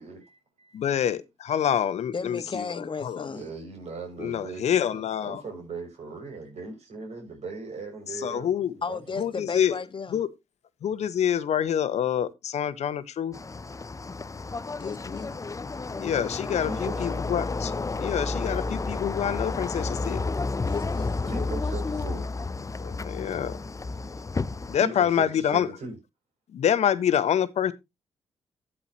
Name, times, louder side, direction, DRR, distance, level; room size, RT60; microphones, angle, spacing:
voice 1, 0.0-1.1 3.3-9.2 16.6-17.2 21.3-22.3 24.7-26.0, right 3 dB, 60° right, 7.0 m, -39 dB
voice 2, 0.7-3.3 4.2-5.4 8.2-8.7 9.2-9.8 10.1-10.3 10.8-13.3 16.0-17.7 18.0-20.2 22.8-23.5 24.7-25.7 26.5-27.7, left 9 dB, 60° left, 1.4 m, -26 dB
voice 3, 2.1-3.5 8.8-10.2 14.7-15.4 20.6-21.5, left 5 dB, 40° left, 1.6 m, -34 dB
sound 1, 13.3-24.8, left 3 dB, 25° left, 0.7 m, -31 dB
12.5 x 8.7 x 3.0 m
hypercardioid pair, 40°, 13 cm